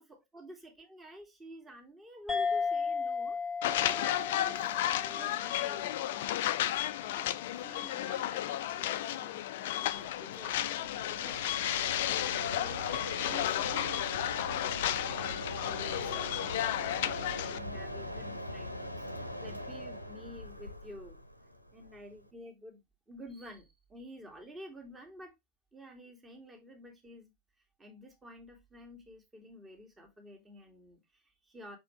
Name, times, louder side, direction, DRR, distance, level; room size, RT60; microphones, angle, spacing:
voice 1, 0.0-3.4 3.6-4.8 5.1-6.0 6.8-7.3 7.5-11.7 11.9-21.2 21.7-22.8 23.1-25.3 25.7-27.3 27.8-31.8, equal, 15° right, 2.3 m, -51 dB
sound 1, 2.3-7.2, left 5 dB, 10° left, 1.1 m, -36 dB
sound 2, 3.6-17.6, left 13 dB, 55° left, 0.5 m, -33 dB
Mechanisms, 9.9-22.3, equal, 90° left, 0.9 m, -42 dB
6.4 x 4.8 x 3.2 m
figure-of-eight pair, 90°, 0 cm